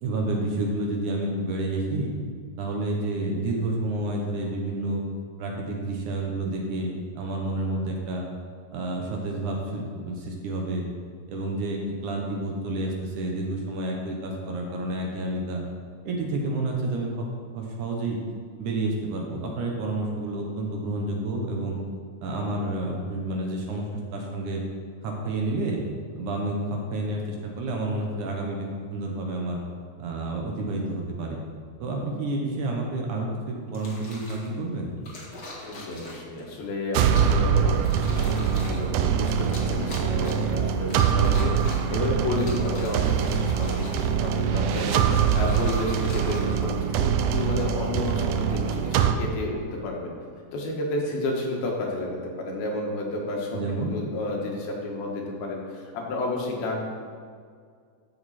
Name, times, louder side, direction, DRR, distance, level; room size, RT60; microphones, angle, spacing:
voice 1, 0.0-2.1 2.6-5.0 5.4-8.3 8.7-10.8 11.3-15.6 16.0-17.3 17.6-18.2 18.6-21.8 22.2-23.9 24.1-24.6 25.0-25.8 26.2-28.6 28.9-29.6 30.0-31.4 31.8-34.9 53.5-53.9, right 2 dB, 65° right, 0 dB, 2.2 m, -29 dB
sound 1, 33.7-34.5 35.0-36.4 37.0-37.4 37.8-38.9 39.4-40.5 40.9-42.0 42.3-44.2 44.6-47.1 47.8-48.1, left 2 dB, 45° left, 1.3 m, -41 dB
voice 2, 35.6-50.1 50.5-56.8, left 2 dB, 85° left, -1 dB, 3.4 m, -31 dB
sound 2, 36.9-49.1, right 7 dB, 85° right, 1.8 m, -24 dB
12.5 x 6.7 x 4.3 m, 2.1 s
omnidirectional pair, 4.2 m